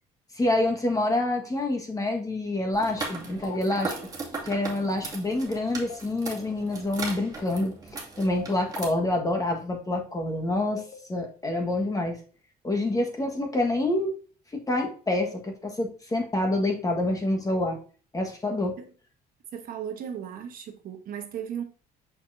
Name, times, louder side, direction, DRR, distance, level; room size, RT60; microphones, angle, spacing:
voice 1, 0.3-4.0 4.4-7.7 8.2-10.8 11.1-12.2 12.6-14.1 14.5-17.8 18.1-18.8, left 2 dB, 20° left, 1.6 m, -27 dB
sound 1, 2.7-8.8, right 3 dB, 20° right, 2.3 m, -38 dB
sound 2, 3.4-3.6 5.8-6.0 8.2-8.4 10.6-11.0, left 8 dB, 55° left, 1.3 m, -42 dB
voice 2, 19.5-21.6, right 8 dB, 60° right, 1.2 m, -36 dB
6.3 x 5.9 x 2.7 m
cardioid pair, 110°, 17 cm